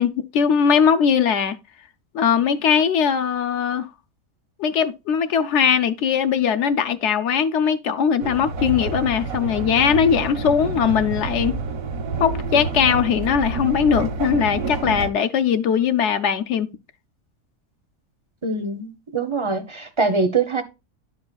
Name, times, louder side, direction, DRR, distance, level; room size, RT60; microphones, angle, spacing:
voice 1, 0.0-1.6 2.1-3.9 4.6-11.6 12.2-16.7, left 7 dB, 65° left, 0.8 m, -20 dB
sound 1, 8.2-15.1, right 3 dB, 80° right, 1.4 m, -28 dB
voice 2, 18.4-20.6, right 4 dB, 35° right, 0.5 m, -23 dB
11.0 x 4.8 x 2.3 m
omnidirectional pair, 1.4 m